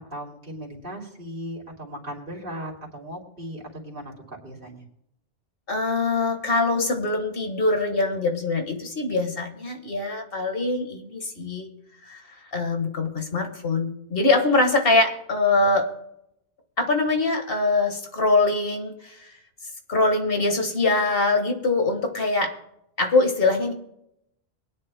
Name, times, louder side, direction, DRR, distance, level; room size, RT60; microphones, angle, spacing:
voice 1, 0.0-4.8, equal, 55° right, -1 dB, 2.9 m, -37 dB
voice 2, 5.7-11.7 12.1-12.2 12.5-15.9 16.8-19.2 19.9-22.5 23.0-23.7, left 3 dB, 60° left, 4 dB, 1.8 m, -23 dB
23.0 x 9.9 x 2.2 m, 0.78 s
omnidirectional pair, 1.1 m